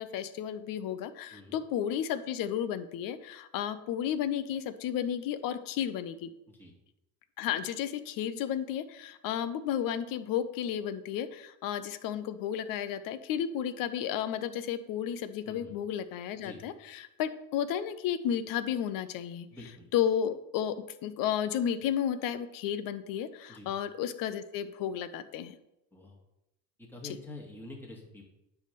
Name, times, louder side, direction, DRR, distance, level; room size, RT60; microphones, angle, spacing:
voice 1, 0.0-6.3 7.4-19.5 19.9-25.6, left 9 dB, 55° left, 13 dB, 0.9 m, -33 dB
voice 2, 19.5-19.9 23.5-23.7 25.9-26.2 26.8-28.2, left 2 dB, 5° left, -2 dB, 2.2 m, -47 dB
10.0 x 3.6 x 6.9 m, 0.88 s
supercardioid pair, 100°, 39 cm